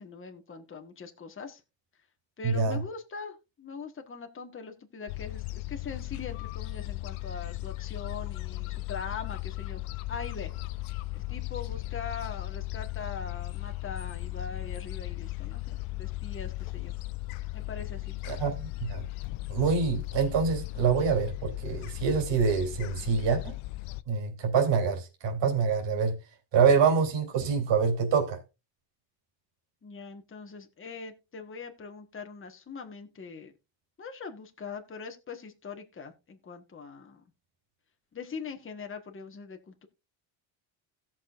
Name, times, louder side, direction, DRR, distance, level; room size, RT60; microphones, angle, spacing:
voice 1, 0.0-1.6 2.4-9.8 10.1-10.5 11.1-16.9 17.5-18.1 29.8-33.5 34.0-37.2 38.1-39.9, left 5 dB, 25° left, 1.4 m, -42 dB
voice 2, 2.4-2.8 18.2-19.1 19.5-23.5 24.1-26.2 26.5-28.4, right 5 dB, 60° right, 3.1 m, -26 dB
Gull seagull, 5.1-24.0, left 19 dB, 90° left, 0.7 m, -37 dB
17.0 x 6.2 x 2.5 m
cardioid pair, 120°, 48 cm